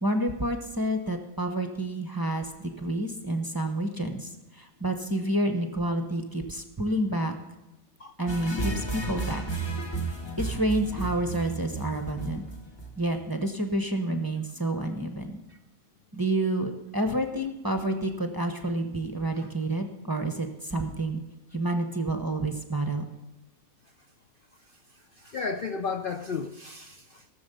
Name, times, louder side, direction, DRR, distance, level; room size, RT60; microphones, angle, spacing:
voice 1, 0.0-7.4 8.2-9.4 10.4-12.4 13.0-15.4 16.1-21.2 21.5-23.0, right 1 dB, 20° right, 5 dB, 0.9 m, -29 dB
sound 1, 8.3-13.3, right 3 dB, 20° left, 1.1 m, -33 dB
voice 2, 25.2-27.3, left 5 dB, 55° left, 6 dB, 0.6 m, -33 dB
17.5 x 7.0 x 6.8 m, 1.0 s
omnidirectional pair, 1.5 m